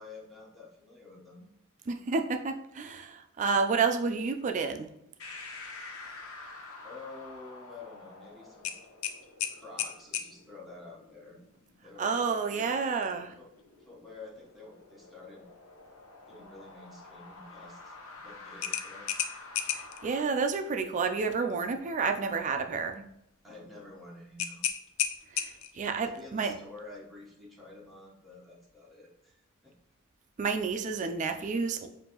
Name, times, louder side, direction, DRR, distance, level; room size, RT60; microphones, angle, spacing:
voice 1, 0.0-1.5 6.8-8.7 9.5-11.4 11.8-12.7 13.4-13.5 13.8-15.5 16.2-19.1 19.6-19.7 23.4-24.7 26.0-29.7, left 3 dB, ahead, -5 dB, 0.9 m, -49 dB
voice 2, 1.9-4.9 12.0-13.3 19.7-23.0 25.3-26.6 30.4-31.9, right 5 dB, 35° right, 7 dB, 0.3 m, -30 dB
sound 1, 5.2-20.2, left 3 dB, 85° left, 0.8 m, -49 dB
sound 2, 8.6-10.3 12.9-13.2 13.6-13.7 18.6-20.0 24.4-25.8, left 9 dB, 70° left, 0.4 m, -33 dB
7.0 x 2.6 x 2.9 m, 0.81 s
head